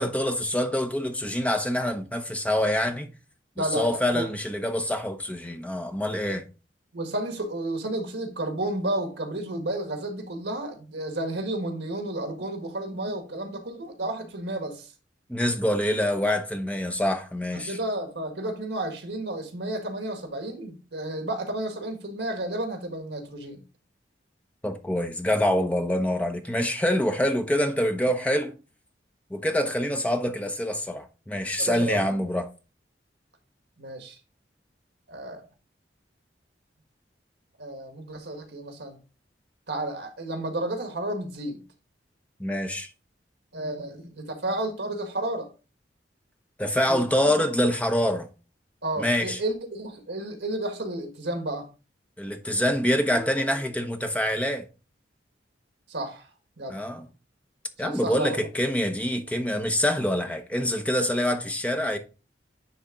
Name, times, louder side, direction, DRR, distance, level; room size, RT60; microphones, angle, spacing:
voice 1, 0.0-3.1 3.6-6.4 15.3-17.8 24.6-28.5 29.3-32.5 42.4-42.9 46.6-48.3 49.0-49.4 52.2-54.6 56.7-57.0 57.8-62.0, left 1 dB, 10° left, 0.8 m, -25 dB
voice 2, 3.6-4.3 6.9-14.9 17.5-23.6 31.6-32.0 33.8-34.2 35.1-35.4 37.6-39.0 39.7-41.6 43.5-45.5 46.9-47.3 48.8-51.7 55.9-56.3 56.6-56.8 57.8-58.4, right 1 dB, 75° right, 1.7 m, -32 dB
10.0 x 3.5 x 3.8 m
head